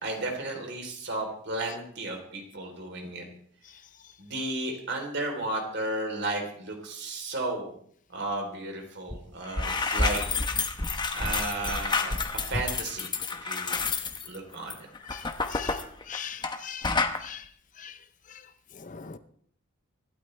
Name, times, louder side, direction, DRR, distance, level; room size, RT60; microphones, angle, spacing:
voice 1, 0.0-3.3 4.2-7.7 8.1-10.2 11.1-12.1 12.5-13.1 13.4-13.9 14.2-14.9, right 2 dB, 55° right, 2 dB, 3.7 m, -33 dB
sound 1, 9.1-9.2 9.4-16.6 16.8-17.2, left 3 dB, 20° left, 1.0 m, -29 dB
voice 2, 16.1-16.9 17.2-17.4 17.8-17.9 18.9-19.2, left 8 dB, 40° left, 12 dB, 0.6 m, -39 dB
25.0 x 12.5 x 3.4 m, 0.62 s
head